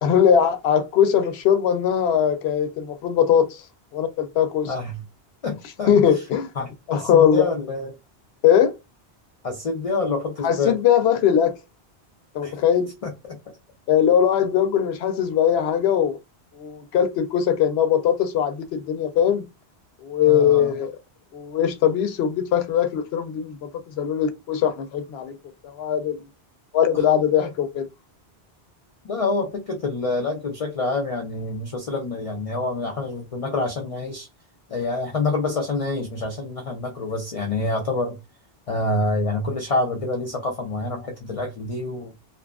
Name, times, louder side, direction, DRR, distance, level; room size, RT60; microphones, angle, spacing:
voice 1, 0.0-3.6 3.9-4.7 5.9-6.5 6.9-7.5 8.4-8.7 10.4-11.5 12.3-12.9 13.9-16.2 16.6-19.5 20.0-20.9 21.3-23.7 24.0-25.4 25.6-26.2 26.7-27.9, left 9 dB, 75° left, 0.8 m, -20 dB
voice 2, 4.7-5.0 5.4-5.9 6.6-7.9 9.4-10.8 12.4-12.5 13.0-13.4 20.2-20.7 26.9-27.0 27.4-27.5 29.0-34.3 34.7-38.2 38.7-42.1, left 2 dB, 45° left, 0.5 m, -27 dB
2.7 x 2.4 x 2.3 m
omnidirectional pair, 1.1 m